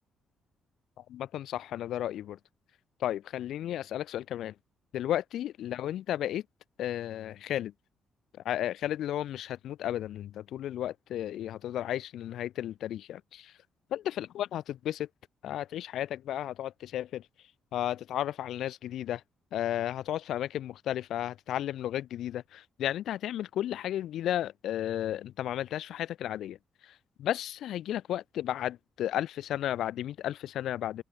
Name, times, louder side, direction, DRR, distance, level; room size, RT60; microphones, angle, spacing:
voice 1, 1.0-2.4 3.0-4.5 4.9-6.4 6.8-7.7 8.4-13.5 13.9-15.1 15.4-17.2 17.7-19.2 19.5-26.6 26.8-31.0, left 12 dB, 70° left, 0.7 m, -33 dB
open air
cardioid pair, 150°, 0 cm